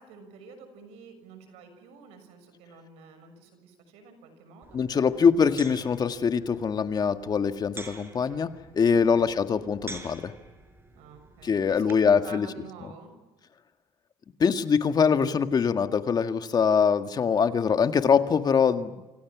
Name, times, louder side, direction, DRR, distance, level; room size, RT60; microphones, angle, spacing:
voice 1, 0.0-5.2 8.9-9.3 10.9-13.1, right 5 dB, 90° right, 8 dB, 6.5 m, -48 dB
sound 1, 4.6-12.2, right 3 dB, 20° right, 6.5 m, -48 dB
voice 2, 4.7-8.5 8.7-10.3 11.4-12.5 14.4-19.0, left 6 dB, 40° left, 8 dB, 1.8 m, -23 dB
28.0 x 27.5 x 6.2 m, 1.1 s
cardioid pair, 100°, 11 cm